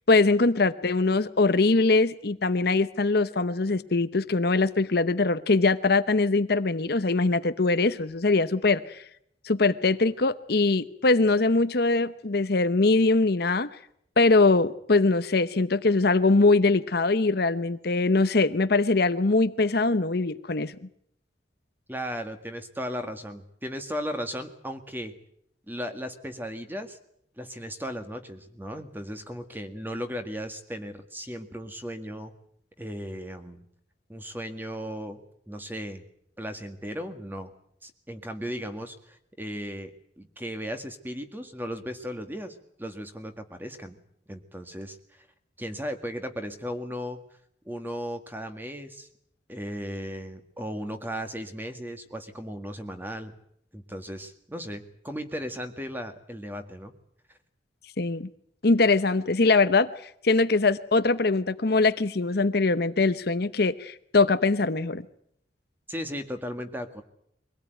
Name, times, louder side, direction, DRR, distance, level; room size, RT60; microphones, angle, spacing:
voice 1, 0.1-9.0 9.4-13.7 14.2-20.7 58.0-58.3 58.6-59.9 60.2-65.0, left 3 dB, 60° left, 0.9 m, -22 dB
voice 2, 21.9-25.1 25.7-27.0 27.4-32.3 32.8-33.6 34.1-36.0 36.4-37.5 37.8-44.0 44.3-45.0 45.6-47.2 47.7-49.1 49.5-53.4 53.7-56.9 65.9-67.0, equal, 10° right, 1.9 m, -36 dB
23.5 x 17.5 x 9.3 m
head